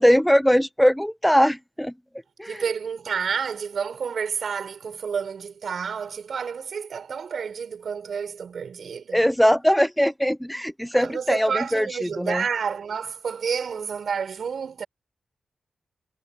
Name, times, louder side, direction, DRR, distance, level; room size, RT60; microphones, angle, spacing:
voice 1, 0.0-1.9 2.4-2.6 9.1-12.4, equal, 5° left, 1.0 m, -21 dB
voice 2, 2.5-9.3 10.9-14.9, right 6 dB, 70° right, 5.0 m, -30 dB
supercardioid pair, 40°, 0 cm